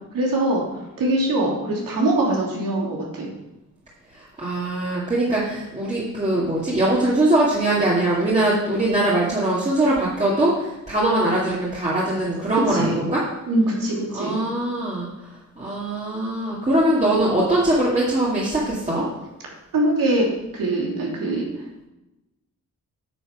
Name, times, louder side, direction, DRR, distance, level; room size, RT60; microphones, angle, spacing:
voice 1, 0.1-0.6 1.0-3.3 12.5-13.0 13.5-14.4 19.7-20.3 20.5-21.5, right 1 dB, 90° right, -3 dB, 3.2 m, -22 dB
voice 2, 4.4-13.2 14.1-15.1 15.6-19.1, right 1 dB, 20° right, -7 dB, 2.2 m, -21 dB
9.3 x 7.1 x 6.1 m, 0.98 s
wide cardioid pair, 115°, 33 cm